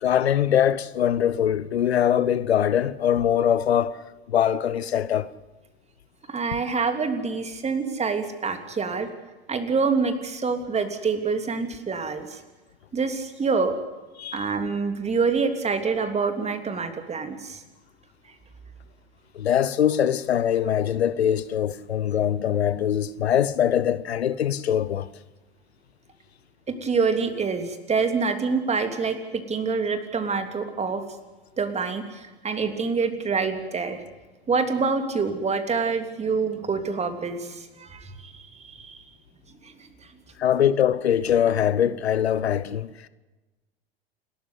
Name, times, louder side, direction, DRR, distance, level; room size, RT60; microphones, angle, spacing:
voice 1, 0.0-4.0 4.3-5.3 14.2-14.4 19.3-25.1 40.4-42.9, left 9 dB, 80° left, 1.0 m, -22 dB
voice 2, 6.3-9.1 9.5-12.4 12.9-13.8 14.3-17.6 26.7-31.0 31.6-34.0 34.5-39.0 39.6-39.7, right 5 dB, 20° right, 3.2 m, -26 dB
28.5 x 13.5 x 8.4 m
hypercardioid pair, 90°, 32 cm